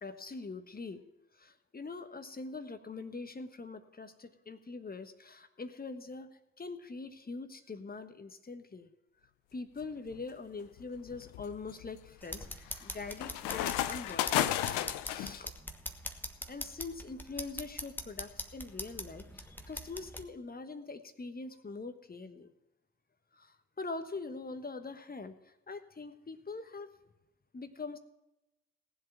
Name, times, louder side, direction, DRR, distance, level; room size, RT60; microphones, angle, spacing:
voice 1, 0.0-1.0 1.3-8.9 9.5-15.5 16.5-22.5 23.3-26.9 27.5-28.0, left 3 dB, 25° left, 9 dB, 1.3 m, -43 dB
sound 1, 9.8-10.2 10.8-15.4, left 13 dB, 65° left, 0.7 m, -34 dB
sound 2, 12.2-20.2, left 1 dB, 5° left, 1.4 m, -43 dB
18.0 x 7.8 x 5.7 m, 0.93 s
figure-of-eight pair, 40°, 36 cm